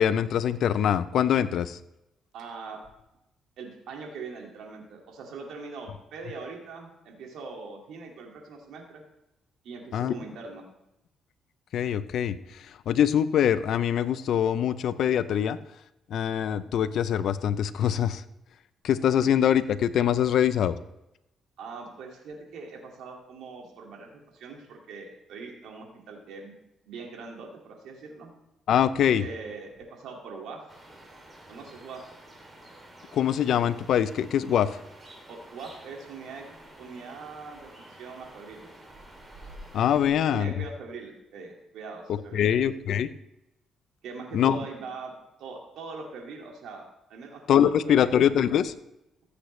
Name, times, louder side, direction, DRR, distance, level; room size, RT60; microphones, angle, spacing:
voice 1, 0.0-1.8 9.9-10.1 11.7-12.4 12.9-15.6 16.1-18.2 18.8-20.8 28.7-29.2 33.1-34.7 39.7-40.5 42.1-43.1 44.3-44.6 47.5-48.7, left 9 dB, 70° left, 14 dB, 0.6 m, -23 dB
voice 2, 2.3-2.8 3.6-9.0 9.6-10.6 21.6-26.6 26.9-28.3 29.2-30.7 31.5-32.0 35.3-36.5 36.8-38.7 40.0-42.6 44.0-45.1 45.4-48.2, right 4 dB, 80° right, 1 dB, 2.2 m, -42 dB
sound 1, 30.7-40.1, right 1 dB, 25° right, 2.9 m, -49 dB
15.0 x 8.3 x 3.3 m, 0.88 s
cardioid pair, 90°, 0 cm